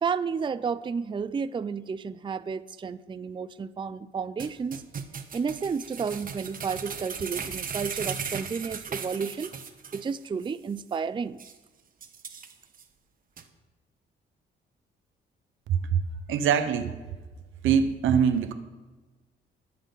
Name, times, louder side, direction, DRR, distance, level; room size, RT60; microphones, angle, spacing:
voice 1, 0.0-4.8 5.3-9.5 9.9-11.4, right 5 dB, 25° right, 13 dB, 0.5 m, -31 dB
sound 1, 4.4-10.1 10.4-10.5 10.9-11.0 11.4-11.5 12.0-12.8 13.4-13.5, right 6 dB, 45° right, 1.2 m, -37 dB
voice 2, 15.7-16.0 16.3-17.0 17.6-18.5, right 7 dB, 80° right, 10 dB, 1.1 m, -23 dB
22.5 x 7.6 x 4.0 m, 1.2 s
cardioid pair, 90°, 20 cm